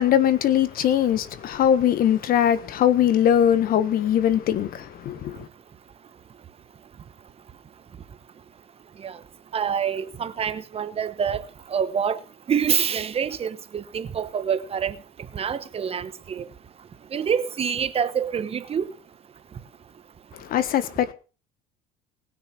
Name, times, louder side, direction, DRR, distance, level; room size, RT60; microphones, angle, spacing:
voice 1, 0.0-5.5 20.3-21.1, left 10 dB, 55° left, 1.4 m, -21 dB
voice 2, 9.5-11.4 11.7-12.2 12.5-15.0 15.3-16.5 17.1-18.9, right 7 dB, 35° right, 1.1 m, -26 dB
19.5 x 6.6 x 6.1 m
cardioid pair, 110°, 18 cm